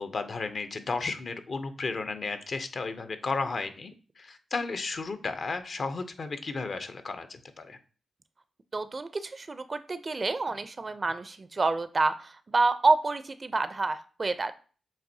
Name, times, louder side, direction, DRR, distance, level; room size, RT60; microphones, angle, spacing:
voice 1, 0.0-7.8, left 4 dB, 60° left, 9 dB, 0.6 m, -34 dB
voice 2, 8.7-14.5, right 3 dB, 45° right, 12 dB, 0.4 m, -28 dB
7.2 x 2.6 x 2.7 m, 0.39 s
supercardioid pair, 45°, 0 cm